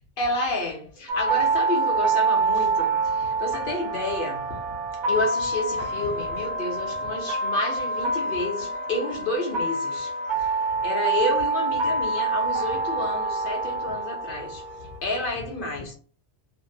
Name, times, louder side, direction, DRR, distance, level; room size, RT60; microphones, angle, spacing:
voice 1, 0.2-4.4 5.1-10.5 10.8-15.9, left 2 dB, 50° left, 0.8 m, -30 dB
sound 1, 1.1-15.0, right 3 dB, 60° right, 0.5 m, -26 dB
2.6 x 2.6 x 2.6 m
omnidirectional pair, 1.2 m